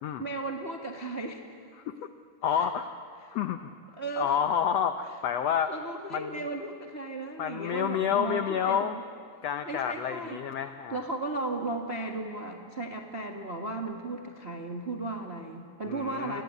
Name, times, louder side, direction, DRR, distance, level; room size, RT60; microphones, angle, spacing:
voice 1, 0.2-1.5 2.5-2.7 4.0-4.4 5.7-9.0 9.7-10.4 10.9-16.4, right 2 dB, 40° right, 2 dB, 0.8 m, -35 dB
voice 2, 2.4-2.9 3.3-3.6 4.2-5.7 6.1-6.4 7.4-9.0 9.4-11.0 15.9-16.4, left 8 dB, 85° left, 9 dB, 1.4 m, -29 dB
28.5 x 22.0 x 9.4 m, 2.3 s
omnidirectional pair, 4.1 m